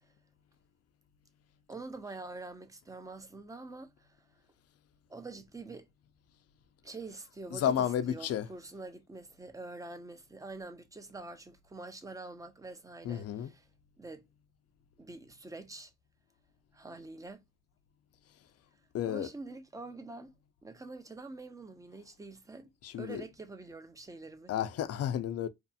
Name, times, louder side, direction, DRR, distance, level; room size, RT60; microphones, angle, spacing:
voice 1, 1.7-4.1 5.1-5.9 6.8-7.8 8.1-13.6 14.0-14.2 15.0-15.9 16.7-17.4 19.0-20.3 20.6-24.5, right 3 dB, 10° right, 0.5 m, -46 dB
voice 2, 7.5-8.5 13.0-13.5 18.9-19.3 22.8-23.2 24.5-25.5, left 10 dB, 55° left, 0.5 m, -32 dB
2.7 x 2.4 x 2.3 m
cardioid pair, 90°, 30 cm